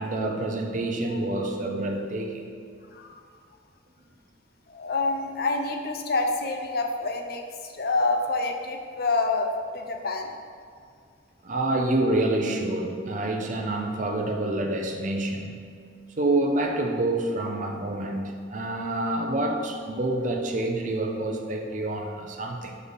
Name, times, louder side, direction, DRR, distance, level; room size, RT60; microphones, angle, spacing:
voice 1, 0.0-2.4 11.4-15.7 16.2-22.8, right 2 dB, 40° right, 2 dB, 0.6 m, -27 dB
voice 2, 4.7-10.3, left 3 dB, 50° left, 4 dB, 0.6 m, -27 dB
5.3 x 5.0 x 4.1 m, 2.3 s
head